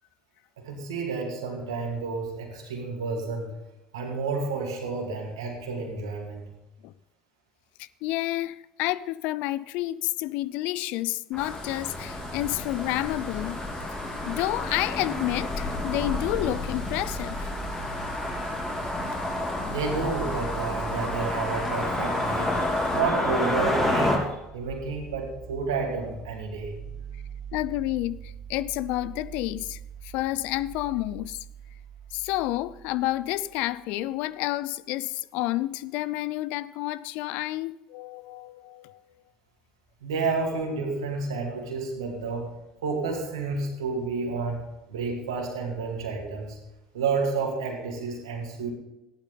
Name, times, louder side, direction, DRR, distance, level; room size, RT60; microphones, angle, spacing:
voice 1, 0.6-3.5 3.9-6.5 19.7-26.8 40.0-42.5 42.8-44.6 44.9-46.6 46.9-48.7, right 4 dB, 85° right, 2.7 m, -30 dB
voice 2, 7.8-13.6 14.3-17.5 27.5-31.4 32.1-39.0, left 16 dB, 65° left, 0.4 m, -30 dB
sound 1, 11.3-24.2, left 1 dB, 15° left, 4.0 m, -30 dB
sound 2, 11.4-23.0, left 3 dB, 45° left, 3.5 m, -46 dB
sound 3, 15.9-33.9, right 7 dB, 55° right, 2.8 m, -43 dB
14.0 x 11.0 x 3.9 m
hypercardioid pair, 70°, 3 cm